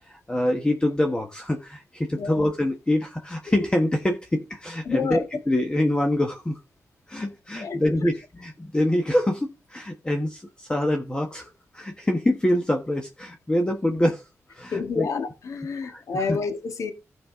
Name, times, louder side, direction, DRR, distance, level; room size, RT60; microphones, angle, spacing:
voice 1, 0.1-6.6 7.1-15.1 15.8-16.4, left 1 dB, 15° left, 1.3 m, -25 dB
voice 2, 4.8-5.2 7.6-7.9 14.7-16.9, left 5 dB, 80° left, 1.6 m, -29 dB
15.5 x 5.5 x 3.7 m
wide cardioid pair, 115°, 5 cm